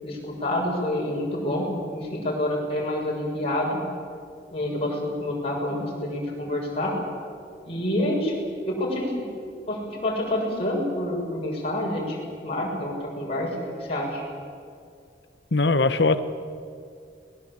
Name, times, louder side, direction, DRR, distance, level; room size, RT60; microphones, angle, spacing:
voice 1, 0.0-3.8 4.5-7.0 7.6-8.3 8.6-9.1 9.7-12.2 12.4-13.5 13.8-14.2, left 1 dB, 35° left, -3 dB, 6.7 m, -27 dB
voice 2, 15.5-16.2, left 3 dB, 75° left, 10 dB, 1.1 m, -20 dB
22.0 x 20.5 x 8.3 m, 2.3 s
head